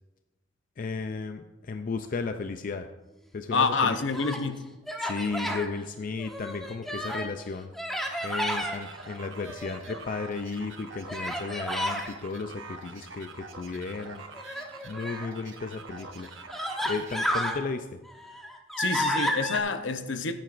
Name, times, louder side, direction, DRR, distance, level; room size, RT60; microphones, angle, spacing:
voice 1, 0.8-2.9 3.3-4.0 5.0-7.7 8.2-14.2 14.8-16.3 16.8-18.0, left 4 dB, 45° left, 0.4 m, -34 dB
voice 2, 3.5-4.6 18.8-20.3, left 4 dB, 70° left, 0.7 m, -27 dB
Human voice, 3.9-4.5 4.9-5.7 6.2-7.3 7.8-8.8 9.4-10.2 11.1-12.1 14.4-15.3 16.0-16.1 16.5-17.6 18.1-19.6, equal, ahead, 1.0 m, -31 dB
sound 1, 8.1-17.8, right 3 dB, 80° right, 1.1 m, -45 dB
16.0 x 8.9 x 2.5 m
head